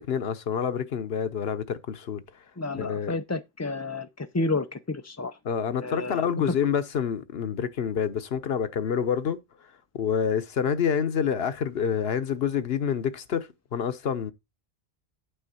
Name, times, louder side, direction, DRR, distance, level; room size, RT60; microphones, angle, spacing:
voice 1, 0.0-2.2 2.7-3.2 5.4-9.4 9.9-14.3, left 7 dB, 70° left, 1.2 m, -27 dB
voice 2, 2.6-5.3 5.8-6.3, left 3 dB, 25° left, 0.3 m, -31 dB
9.2 x 3.6 x 6.8 m
omnidirectional pair, 1.1 m